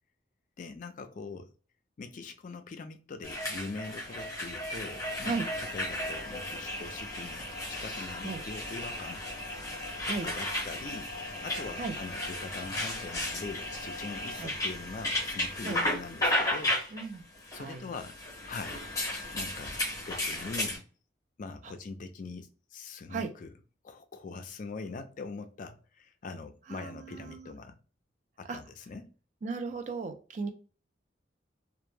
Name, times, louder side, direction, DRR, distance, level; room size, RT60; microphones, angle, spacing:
voice 1, 0.6-1.5 2.0-5.4 5.7-9.2 10.1-11.1 11.4-16.8 17.5-18.2 18.5-18.8 19.3-20.9 21.4-23.5 23.8-27.7 28.4-29.1, left 4 dB, 45° left, 0.3 m, -42 dB
sound 1, 3.2-20.8, left 1 dB, 20° left, 0.8 m, -34 dB
voice 2, 16.9-17.2 17.5-17.9 23.1-23.3 26.7-27.5 28.5-28.6 29.4-30.5, right 4 dB, 40° right, 0.4 m, -36 dB
2.1 x 2.0 x 3.1 m
head